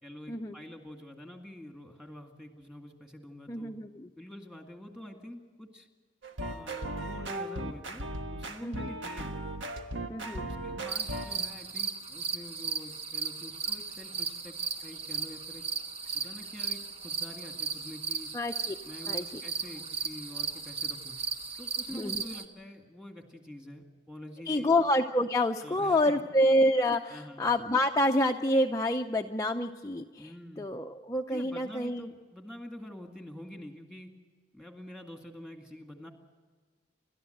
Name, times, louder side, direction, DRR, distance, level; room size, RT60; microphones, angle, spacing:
voice 1, 0.0-3.7 4.2-5.9 6.5-9.3 10.3-15.7 16.1-18.3 18.8-21.2 21.6-24.7 25.6-26.2 27.1-27.5 30.2-30.7 31.3-34.1 34.5-36.1, left 1 dB, 5° right, 3 dB, 2.0 m, -46 dB
voice 2, 3.5-4.1 8.6-8.9 10.1-10.5 18.3-18.7 19.1-19.2 21.9-22.2 24.5-32.1, left 1 dB, 15° left, 3 dB, 0.5 m, -28 dB
sound 1, 6.2-11.4, right 1 dB, 80° right, 1.4 m, -37 dB
sound 2, 10.9-22.4, right 5 dB, 30° right, 1.2 m, -36 dB
28.5 x 12.5 x 7.8 m, 1.5 s
head